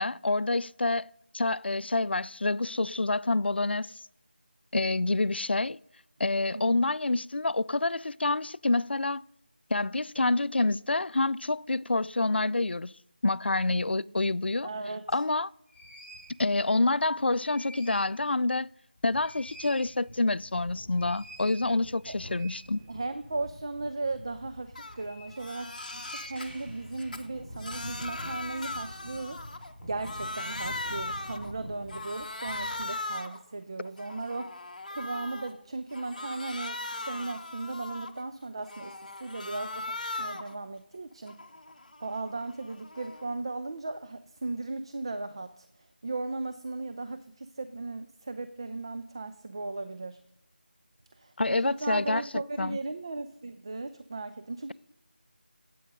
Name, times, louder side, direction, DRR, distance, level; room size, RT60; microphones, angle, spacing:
voice 1, 0.0-4.0 4.7-5.8 6.2-9.2 9.7-12.9 13.2-14.7 15.1-15.5 16.4-18.7 19.0-22.8 51.4-52.8, left 2 dB, 90° left, 0.3 m, -27 dB
voice 2, 14.6-15.2 22.1-22.2 22.9-34.6 34.9-41.4 42.0-45.7 46.0-50.2 51.2-51.3 51.6-54.7, right 3 dB, 30° right, 0.4 m, -37 dB
sound 1, 15.1-15.2 15.7-16.4 17.2-18.2 18.5-18.6 19.0-32.8, equal, ahead, 4.4 m, -46 dB
Crying sobbing, 24.7-25.0 25.3-26.5 26.9-29.7 30.0-31.5 31.9-33.4 33.8-35.5 35.9-38.2 38.6-40.6 40.9-43.3, left 2 dB, 45° left, 1.1 m, -39 dB
12.0 x 8.4 x 5.3 m
figure-of-eight pair, 170°, 6 cm